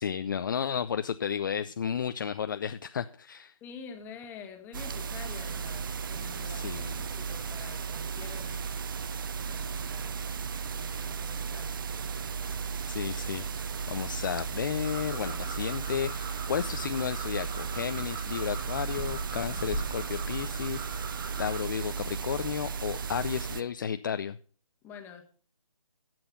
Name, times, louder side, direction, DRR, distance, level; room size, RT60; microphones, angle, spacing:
voice 1, 0.0-3.5 6.4-7.0 12.9-24.4, left 8 dB, 35° left, 10 dB, 0.5 m, -33 dB
voice 2, 3.6-8.6 9.5-10.2 10.7-11.7 24.8-25.2, left 6 dB, 10° left, 5 dB, 1.4 m, -47 dB
sound 1, 4.7-23.6, right 6 dB, 40° right, 0.7 m, -35 dB
sound 2, 14.8-21.6, right 3 dB, 15° right, 1.8 m, -41 dB
11.5 x 7.8 x 5.9 m, 0.42 s
figure-of-eight pair, 150°, 17 cm